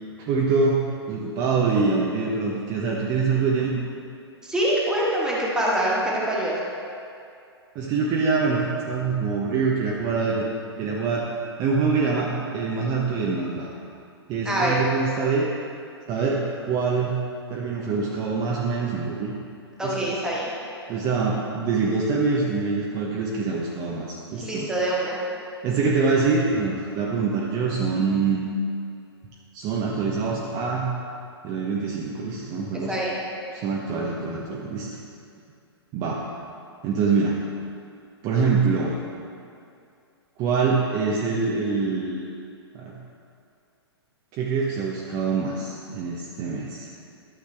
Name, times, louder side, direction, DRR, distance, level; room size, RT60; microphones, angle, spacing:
voice 1, 0.2-3.8 7.7-10.5 10.8-11.3 11.6-13.7 14.3-15.5 16.1-17.1 17.5-19.3 19.8-20.1 20.9-24.7 25.6-28.4 29.5-30.9 31.4-33.0 33.5-34.9 35.9-36.2 36.8-37.4 38.2-39.0 40.4-42.2 42.7-42.9 44.3-46.9, right 4 dB, 30° right, -3 dB, 0.9 m, -24 dB
voice 2, 4.4-6.6 14.4-14.8 19.8-20.5 24.4-25.2 32.8-33.2, right 1 dB, 5° right, -6 dB, 1.7 m, -24 dB
12.0 x 6.4 x 3.4 m, 2.5 s
figure-of-eight pair, 115°, 14 cm